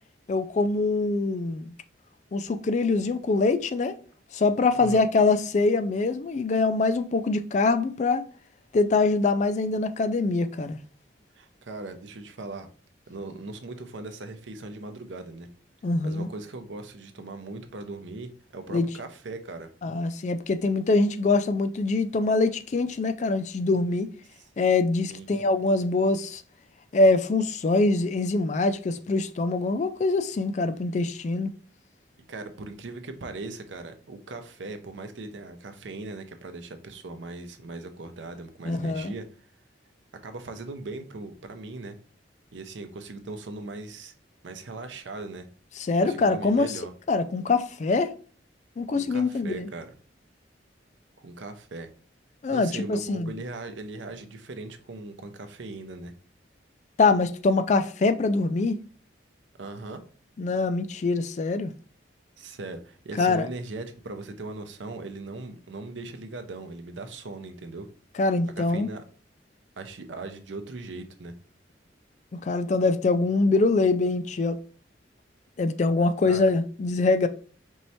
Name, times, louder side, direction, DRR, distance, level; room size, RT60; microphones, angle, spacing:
voice 1, 0.3-1.6 2.3-3.9 4.3-8.2 8.7-10.8 15.8-16.3 18.7-18.9 19.8-24.1 24.6-26.4 26.9-31.5 38.7-39.1 45.8-46.7 47.1-48.1 48.8-49.7 52.4-53.3 57.0-58.8 60.4-61.7 63.2-63.5 68.2-68.9 72.3-74.6 75.6-77.3, left 3 dB, 40° left, 0.3 m, -24 dB
voice 2, 4.7-5.1 11.4-12.7 13.1-15.5 16.0-19.7 24.4-24.5 25.1-25.4 32.3-39.3 40.2-42.0 42.5-44.1 44.4-45.4 46.0-46.9 48.9-49.9 51.2-51.9 52.5-56.1 59.6-60.0 62.4-67.9 68.6-69.0 69.8-71.3 76.2-76.4, right 2 dB, 80° right, 0.6 m, -39 dB
4.5 x 3.2 x 2.7 m
head